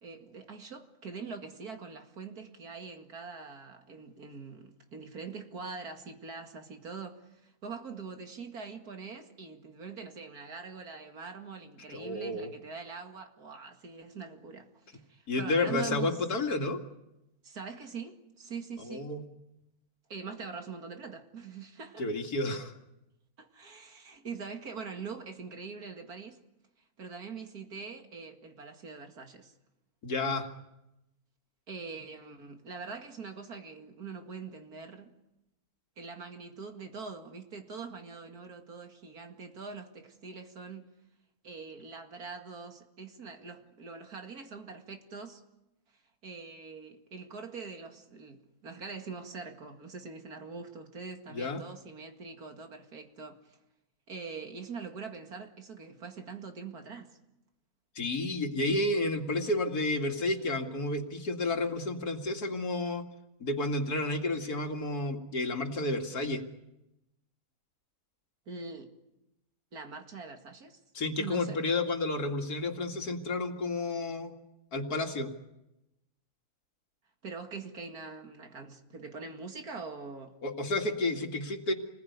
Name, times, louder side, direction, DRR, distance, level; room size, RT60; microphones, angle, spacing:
voice 1, 0.0-16.1 17.4-19.1 20.1-22.1 23.4-26.4 27.0-29.5 31.7-35.1 36.0-40.9 41.4-45.4 46.2-53.6 54.1-57.1 68.5-68.9 69.7-70.8 71.2-71.6 77.2-80.4, right 5 dB, 85° right, 2.7 m, -43 dB
voice 2, 11.9-12.5 15.3-16.8 18.9-19.2 22.0-22.7 30.0-30.5 51.3-51.6 58.0-63.0 63.4-66.4 70.9-74.3 74.7-75.3 80.4-81.7, left 2 dB, 85° left, 2.6 m, -31 dB
28.5 x 20.5 x 9.5 m
omnidirectional pair, 1.6 m